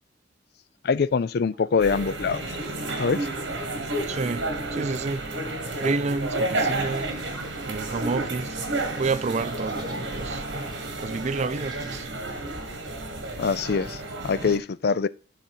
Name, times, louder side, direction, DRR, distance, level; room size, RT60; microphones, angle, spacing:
voice 1, 0.8-2.5 3.0-3.3 13.4-15.1, left 5 dB, 55° left, 0.4 m, -24 dB
sound 1, 1.8-14.6, right 2 dB, 70° right, 1.7 m, -31 dB
voice 2, 4.1-5.3 5.8-7.1 7.7-8.6 9.0-12.1, right 4 dB, 40° right, 0.4 m, -30 dB
sound 2, 6.6-12.0, right 2 dB, 20° right, 1.6 m, -48 dB
9.0 x 4.1 x 7.2 m
head